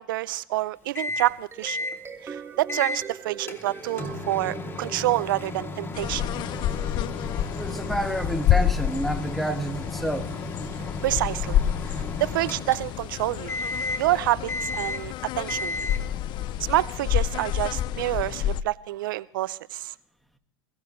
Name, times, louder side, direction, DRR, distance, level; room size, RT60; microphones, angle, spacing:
voice 1, 0.0-1.8 2.2-6.3 9.5-9.6 11.0-11.6 11.9-13.6 14.0-15.8 16.7-19.9, right 16 dB, 70° right, 0.5 m, -27 dB
Microwave oven, 1.0-1.4 1.7-2.0 2.7-3.0 3.5-13.1 13.5-14.1 14.5-15.1 15.5-16.1, left 2 dB, 20° left, 2.6 m, -34 dB
sound 1, 1.3-5.6, right 5 dB, 20° right, 1.8 m, -41 dB
sound 2, 5.9-18.6, left 11 dB, 40° left, 0.5 m, -29 dB
voice 2, 7.6-10.3, right 1 dB, ahead, 1.9 m, -29 dB
22.5 x 16.5 x 3.1 m
hypercardioid pair, 95°, 12 cm